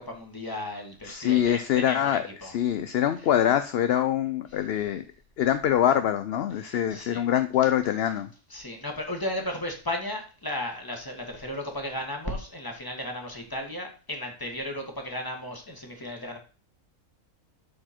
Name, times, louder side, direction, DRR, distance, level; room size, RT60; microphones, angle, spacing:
voice 1, 0.0-2.5 6.6-7.2 8.5-16.4, left 1 dB, 15° left, 2 dB, 1.8 m, -35 dB
voice 2, 1.0-5.0 5.4-8.3, left 10 dB, 60° left, 10 dB, 0.7 m, -24 dB
12.0 x 4.6 x 4.4 m, 0.38 s
omnidirectional pair, 1.4 m